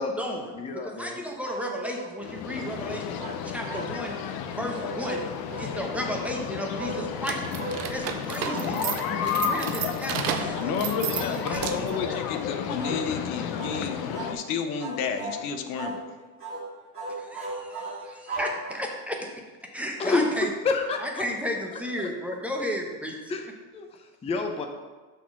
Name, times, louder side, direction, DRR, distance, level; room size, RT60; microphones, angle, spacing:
voice 1, 0.0-4.2 4.5-5.3 5.6-7.4 7.9-8.8 9.2-10.7 11.1-12.0 17.1-19.3 19.7-20.5 21.0-23.2, equal, 5° right, 0 dB, 0.9 m, -33 dB
voice 2, 0.5-1.2 20.0-21.2 22.0-22.1 23.3-23.5 23.7-24.7, left 3 dB, 15° left, 4 dB, 0.5 m, -28 dB
sound 1, 1.4-2.2 3.2-4.2 4.7-5.7 6.8-7.0 7.5-7.8 8.5-8.8 9.0-9.3 9.6-9.9 10.5-10.8 11.0-11.3 11.9-12.1 12.8-13.0 13.5-13.8 14.1-14.4 14.8-15.4 15.8-16.0 16.4-16.6 16.9-19.1, right 2 dB, 30° right, 2.0 m, -36 dB
sound 2, 2.2-14.3, left 8 dB, 55° left, 0.7 m, -32 dB
sound 3, 7.2-12.0, right 9 dB, 50° right, 0.7 m, -33 dB
voice 3, 10.6-16.0, left 6 dB, 90° left, 7 dB, 0.9 m, -31 dB
5.9 x 4.2 x 6.0 m, 1.3 s
supercardioid pair, 115°, 44 cm